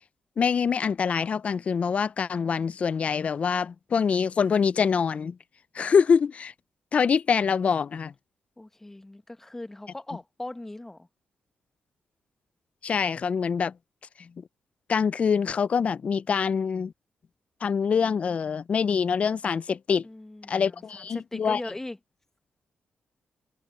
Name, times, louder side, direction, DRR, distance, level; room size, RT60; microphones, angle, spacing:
voice 1, 0.4-5.4 5.7-6.5 6.9-8.1 12.8-13.7 14.9-16.9 17.6-20.1 20.5-21.6, left 6 dB, 45° left, 0.4 m, -25 dB
voice 2, 8.6-11.1 20.0-22.0, left 1 dB, 15° left, 1.1 m, -39 dB
cardioid pair, 110°, 3 cm